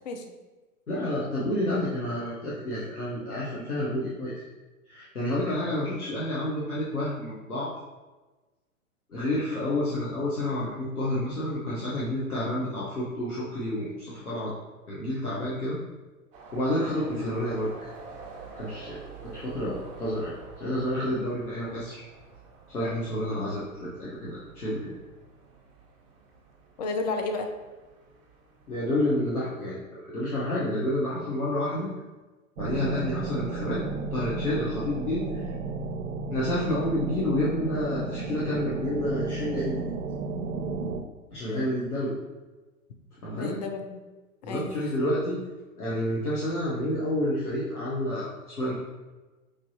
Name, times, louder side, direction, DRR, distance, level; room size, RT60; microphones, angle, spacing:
voice 1, 0.9-4.4 4.9-7.7 9.1-14.5 14.9-15.8 16.5-17.9 18.5-22.0 22.7-24.9 28.7-31.9 32.6-33.8 34.1-35.5 36.3-39.9 41.3-42.2 43.2-43.6 44.4-45.4 45.8-48.7, left 1 dB, 90° left, -7 dB, 1.1 m, -29 dB
sound 1, 16.3-29.1, right 4 dB, 25° right, 0.7 m, -48 dB
voice 2, 26.8-27.5 41.4-41.7 43.4-44.0 44.5-44.7, left 3 dB, 30° left, 4 dB, 0.4 m, -32 dB
sound 2, 32.6-41.0, right 4 dB, 65° right, 0.6 m, -33 dB
5.1 x 3.4 x 2.7 m, 1.2 s
figure-of-eight pair, 110°, 43 cm